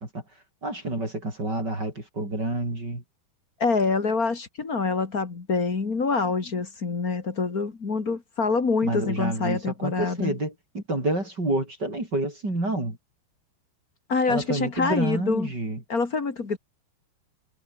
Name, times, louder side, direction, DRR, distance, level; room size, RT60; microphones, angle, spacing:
voice 1, 0.6-3.0 8.8-13.0 14.3-15.8, right 2 dB, 25° right, 6.9 m, -28 dB
voice 2, 3.6-10.4 14.1-15.5 15.9-16.6, left 4 dB, 30° left, 1.8 m, -26 dB
omnidirectional pair, 4.8 m